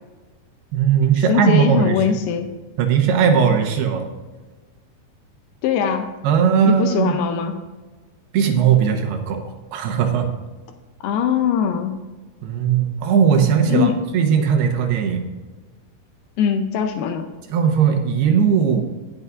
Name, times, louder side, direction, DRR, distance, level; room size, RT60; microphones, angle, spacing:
voice 1, 0.7-2.0 2.8-4.1 6.2-7.2 8.3-10.3 12.4-15.2 17.5-18.8, right 7 dB, 80° right, 4 dB, 2.9 m, -18 dB
voice 2, 1.3-2.5 5.6-6.1 6.6-7.6 11.0-11.9 13.7-14.0 16.4-17.3, left 8 dB, 80° left, 6 dB, 2.4 m, -21 dB
16.5 x 6.8 x 2.5 m, 1.3 s
omnidirectional pair, 4.8 m